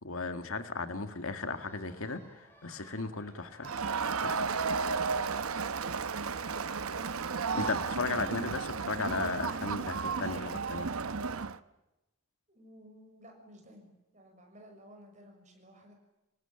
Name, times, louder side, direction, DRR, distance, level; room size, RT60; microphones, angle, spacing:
voice 1, 0.0-3.8 4.2-4.6 7.5-10.9, left 3 dB, 75° left, 9 dB, 2.0 m, -36 dB
sound 1, 0.6-8.2, equal, 10° left, 6.3 m, -60 dB
Crowd, 3.6-11.6, right 5 dB, 90° right, 0.9 m, -33 dB
voice 2, 6.5-7.3 12.5-15.9, equal, 35° right, 3 dB, 6.7 m, -55 dB
26.0 x 20.0 x 9.0 m, 1.0 s
head